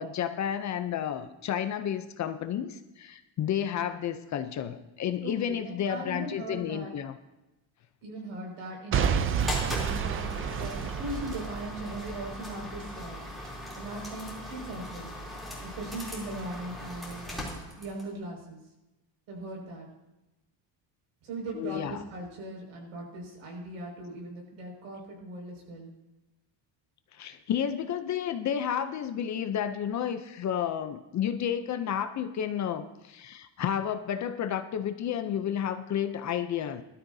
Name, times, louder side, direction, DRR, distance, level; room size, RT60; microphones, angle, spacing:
voice 1, 0.0-7.1 21.5-22.0 27.1-36.8, left 9 dB, 35° left, 9 dB, 0.5 m, -31 dB
voice 2, 5.2-6.9 8.0-13.2 13.7-15.1 15.6-18.6 19.3-19.9 21.2-25.9, right 1 dB, 75° right, 0 dB, 5.8 m, -39 dB
Boom / Shatter / Crushing, 8.9-12.9 13.4-13.5, right 7 dB, 30° right, 0.4 m, -30 dB
sound 1, 9.4-18.1, left 1 dB, ahead, 3.1 m, -40 dB
20.0 x 12.5 x 2.7 m, 0.99 s
cardioid pair, 175°, 48 cm